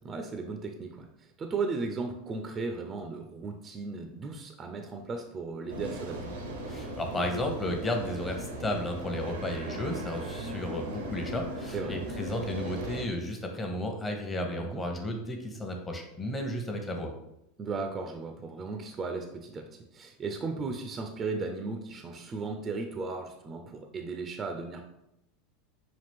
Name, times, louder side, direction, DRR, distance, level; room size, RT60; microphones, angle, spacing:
voice 1, 0.0-6.3 11.7-12.0 14.6-14.8 17.6-24.9, right 4 dB, 30° right, 4 dB, 0.5 m, -36 dB
mbkl entrance mid, 5.7-13.0, right 1 dB, 80° right, 0.8 m, -38 dB
voice 2, 6.7-17.1, left 1 dB, 20° left, 3 dB, 0.9 m, -33 dB
5.8 x 2.4 x 3.5 m, 0.83 s
hypercardioid pair, 90°, 0 cm